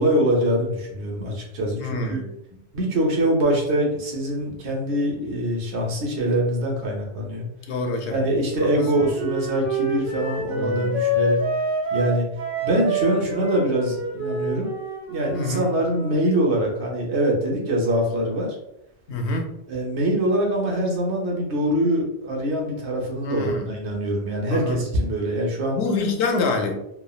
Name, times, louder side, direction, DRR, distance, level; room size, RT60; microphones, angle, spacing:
voice 1, 0.0-2.2 2.7-7.5 8.1-11.4 11.9-12.3 12.6-14.7 15.1-18.5 19.7-25.8, right 1 dB, 75° right, 0 dB, 1.1 m, -24 dB
voice 2, 1.7-2.3 7.7-8.2 8.6-9.0 10.5-10.9 15.3-15.6 19.1-19.5 23.2-23.7 24.5-24.8 25.7-26.7, left 3 dB, 75° left, 3 dB, 0.8 m, -26 dB
Wind instrument woodwind instrument, 8.7-16.1, right 1 dB, 55° right, 1.4 m, -27 dB
3.2 x 2.2 x 2.3 m, 0.82 s
omnidirectional pair, 1.1 m